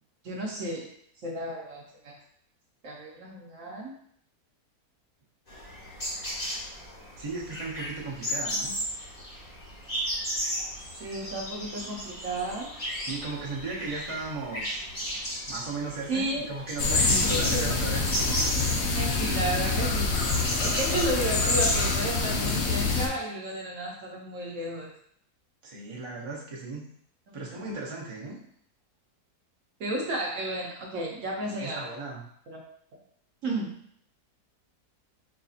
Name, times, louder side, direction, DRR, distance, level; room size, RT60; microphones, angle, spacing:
voice 1, 0.2-0.9 1.2-2.2 2.8-3.9 11.0-12.7 16.1-16.5 17.3-17.9 18.9-20.2 20.6-24.9 27.3-27.4 29.8-31.9 32.5-32.6 33.4-33.7, right 1 dB, 60° right, -2 dB, 0.9 m, -33 dB
sound 1, 5.5-21.8, equal, 30° left, 1.1 m, -35 dB
voice 2, 7.2-8.7 13.0-14.8 15.5-18.1 25.6-26.8 27.3-28.4 31.5-32.2, right 3 dB, 40° right, -5 dB, 0.4 m, -36 dB
sound 2, 16.8-23.1, left 3 dB, 70° left, 0.6 m, -26 dB
4.7 x 2.7 x 2.4 m, 0.65 s
omnidirectional pair, 1.7 m